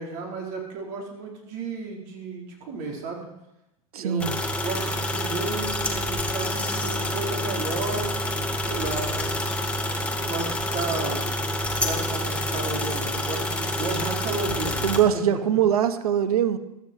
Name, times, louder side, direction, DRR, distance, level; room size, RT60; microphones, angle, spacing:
voice 1, 0.0-3.3 4.0-9.3 10.2-11.2 11.8-14.8 15.1-15.2, right 3 dB, 50° right, 0 dB, 4.6 m, -33 dB
voice 2, 3.9-4.4 14.8-16.6, right 9 dB, 75° right, 12 dB, 1.2 m, -22 dB
sound 1, 4.2-15.0, left 1 dB, 5° left, 2.0 m, -28 dB
15.0 x 13.0 x 4.6 m, 0.90 s
hypercardioid pair, 100°, 19 cm